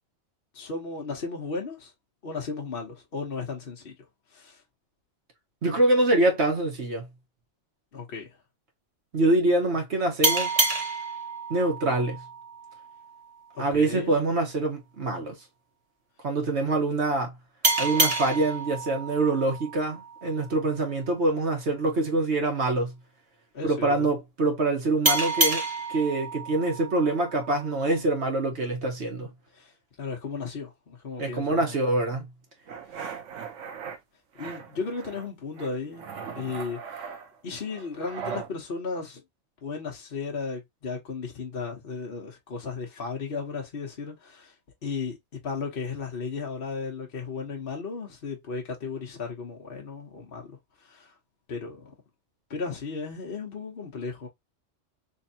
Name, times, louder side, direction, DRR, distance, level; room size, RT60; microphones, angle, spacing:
voice 1, 0.5-1.9 2.2-3.9 4.3-4.6 7.9-8.4 13.5-14.2 23.5-24.1 29.5-31.8 32.9-33.1 34.4-36.1 36.3-36.8 37.4-39.2 39.6-44.5 44.8-51.2 51.5-51.9 52.5-54.3, left 4 dB, 50° left, 1.1 m, -35 dB
voice 2, 5.6-7.1 9.1-10.6 11.5-12.2 13.6-15.4 16.2-17.3 17.8-22.9 23.6-29.3 31.2-32.3, right 2 dB, 65° right, 1.5 m, -25 dB
sound 1, 10.2-13.5 17.6-20.9 25.0-28.0, right 3 dB, 35° right, 0.9 m, -29 dB
sound 2, 32.7-34.0 34.4-35.3 35.6-38.5, right 7 dB, 85° right, 1.2 m, -39 dB
3.5 x 3.2 x 2.7 m
omnidirectional pair, 1.2 m